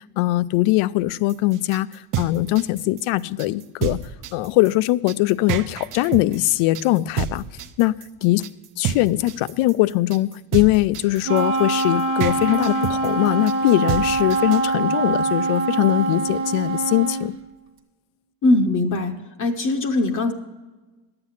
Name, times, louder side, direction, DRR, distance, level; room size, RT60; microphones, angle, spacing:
voice 1, 0.0-4.0 4.3-7.4 7.8-7.9 8.2-8.4 8.8-17.3, left 17 dB, 90° left, 18 dB, 0.6 m, -21 dB
sound 1, 1.3-14.7, right 9 dB, 40° right, 0.5 m, -30 dB
Wind instrument woodwind instrument, 11.2-17.3, right 3 dB, 25° right, 1.0 m, -23 dB
voice 2, 18.4-20.3, left 2 dB, 40° left, 4 dB, 0.7 m, -21 dB
11.5 x 7.8 x 5.6 m, 1.2 s
cardioid pair, 165°, 49 cm